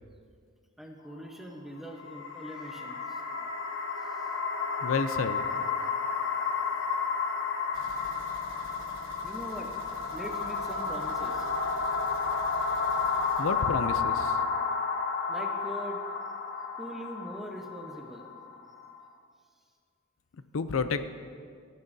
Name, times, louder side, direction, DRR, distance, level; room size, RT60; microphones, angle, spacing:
voice 1, 0.8-3.2 4.0-4.3 9.2-9.7 10.1-11.5 15.3-16.0 16.8-18.3, equal, ahead, 1 dB, 0.9 m, -42 dB
sound 1, 1.9-19.1, left 5 dB, 65° left, 1.0 m, -32 dB
voice 2, 4.8-5.4 13.4-14.4 20.5-21.0, left 5 dB, 80° left, 11 dB, 0.5 m, -30 dB
sound 2, 7.7-14.4 14.7-14.8 15.2-15.3, right 2 dB, 75° right, 1.2 m, -50 dB
18.0 x 10.5 x 2.7 m, 2.1 s
head